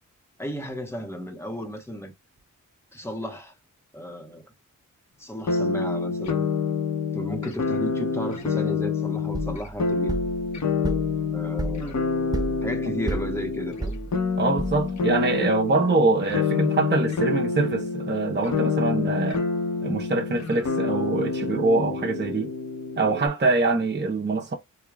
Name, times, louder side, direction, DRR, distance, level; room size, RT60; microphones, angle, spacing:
voice 1, 0.4-2.1 2.9-3.5 3.9-4.5 5.2-6.5 7.1-10.2 11.3-12.0 12.6-14.0, equal, 10° left, 1.2 m, -34 dB
sound 1, 5.5-23.3, left 4 dB, 55° left, 1.0 m, -27 dB
sound 2, 9.3-15.2, right 2 dB, 10° right, 0.4 m, -33 dB
voice 2, 14.4-19.4 19.8-22.5 23.0-24.5, right 3 dB, 35° right, 0.9 m, -24 dB
4.6 x 2.4 x 2.3 m
wide cardioid pair, 90°, 33 cm